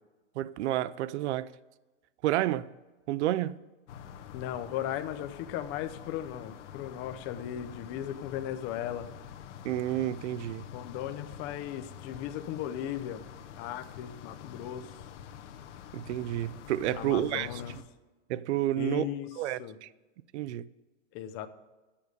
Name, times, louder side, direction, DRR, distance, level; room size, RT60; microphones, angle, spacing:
voice 1, 0.4-1.5 2.2-2.7 3.1-3.6 9.6-10.6 15.9-17.6 18.3-19.1 19.4-19.9 20.3-20.7, right 14 dB, 70° right, 0.6 m, -30 dB
sound 1, 3.9-17.8, left 9 dB, 75° left, 1.1 m, -47 dB
voice 2, 4.3-9.1 10.7-13.2 13.6-14.9 16.9-17.7 18.8-19.3 19.6-19.8 21.1-21.5, left 11 dB, 35° left, 0.7 m, -37 dB
10.5 x 8.6 x 5.1 m
supercardioid pair, 150°, 36 cm